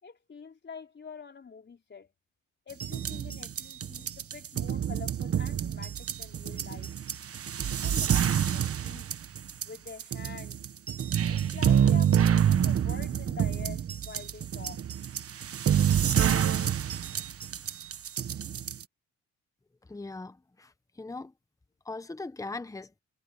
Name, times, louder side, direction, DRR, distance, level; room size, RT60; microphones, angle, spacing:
voice 1, 0.0-2.1 2.7-6.9 7.6-9.2 9.6-10.6 11.3-14.9, left 5 dB, 35° left, 4.8 m, -46 dB
sound 1, 2.7-18.8, right 9 dB, 50° right, 1.4 m, -27 dB
voice 2, 19.9-21.3 21.8-22.9, left 3 dB, 10° left, 1.1 m, -40 dB
cardioid pair, 90°, 30 cm